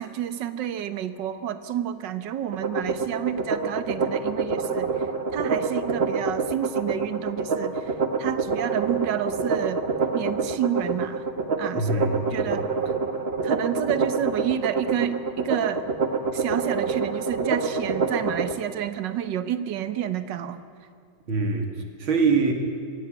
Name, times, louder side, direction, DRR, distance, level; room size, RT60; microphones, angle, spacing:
voice 1, 0.0-5.0 5.3-9.8 10.1-11.2 11.6-12.9 13.4-15.9 16.3-20.6, right 10 dB, 65° right, 11 dB, 1.7 m, -30 dB
sound 1, 2.5-18.5, right 4 dB, 35° right, 1.3 m, -26 dB
voice 2, 11.7-12.6 21.3-21.7 22.0-22.5, right 4 dB, 85° right, 4 dB, 3.2 m, -24 dB
24.0 x 16.0 x 9.0 m, 2.4 s
omnidirectional pair, 2.2 m